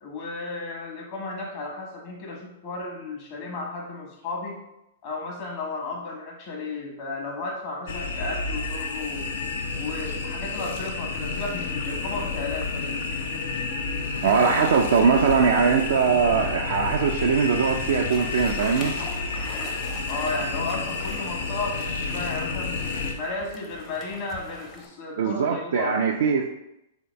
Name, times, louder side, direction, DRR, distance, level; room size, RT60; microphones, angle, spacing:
voice 1, 0.0-4.6 5.0-9.3 9.7-12.9 20.1-22.8 23.1-26.0, left 3 dB, 45° left, -1 dB, 1.1 m, -34 dB
sound 1, 7.9-23.1, left 4 dB, 65° left, 0.5 m, -30 dB
voice 2, 14.2-18.9 25.2-26.5, right 6 dB, 65° right, 1 dB, 0.3 m, -21 dB
sound 2, 18.1-24.9, left 2 dB, 25° left, 0.7 m, -43 dB
3.7 x 2.7 x 3.3 m, 0.87 s
figure-of-eight pair, 105°, 0 cm